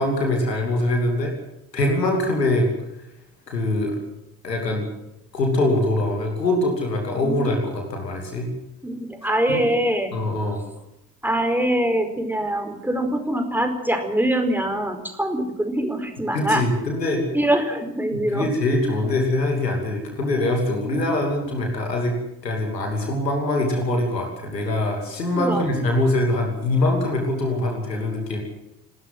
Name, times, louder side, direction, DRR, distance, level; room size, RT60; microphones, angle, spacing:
voice 1, 0.0-1.3 1.7-2.7 3.5-4.0 4.4-4.9 5.3-8.5 9.5-9.7 10.1-10.6 16.3-17.3 18.1-22.2 22.4-28.4, left 1 dB, 85° left, 2 dB, 2.8 m, -23 dB
voice 2, 8.8-10.1 11.2-16.6 17.3-18.5 25.3-25.7, right 1 dB, 5° right, 6 dB, 4.6 m, -23 dB
28.5 x 13.0 x 7.7 m, 0.87 s
figure-of-eight pair, 45°, 49 cm